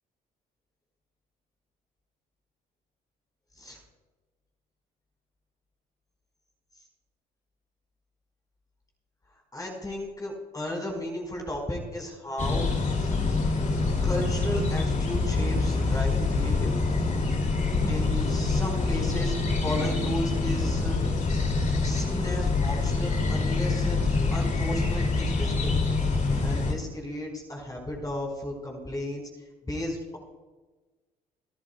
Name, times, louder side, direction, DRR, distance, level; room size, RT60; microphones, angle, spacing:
voice 1, 9.5-13.2 14.0-16.8 17.9-21.0 21.8-24.0 24.3-25.8 26.4-29.2 29.6-30.2, left 1 dB, 20° left, -1 dB, 4.8 m, -34 dB
sound 1, 12.4-26.7, left 3 dB, 40° left, 2.6 m, -26 dB
27.5 x 11.0 x 2.3 m, 1.2 s
supercardioid pair, 60°, 19 cm